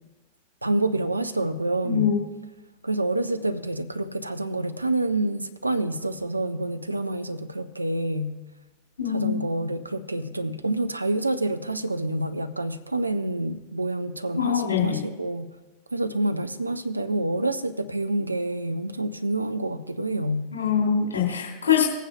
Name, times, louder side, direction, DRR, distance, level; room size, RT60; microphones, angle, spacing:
voice 1, 0.6-2.1 2.8-8.4 9.0-15.5 15.9-20.5, right 2 dB, 85° right, 10 dB, 0.5 m, -27 dB
voice 2, 1.8-2.2 9.0-9.4 14.4-15.0 20.5-21.8, left 8 dB, 65° left, -3 dB, 2.5 m, -23 dB
20.0 x 9.1 x 2.3 m, 1.1 s
figure-of-eight pair, 90°, 0 cm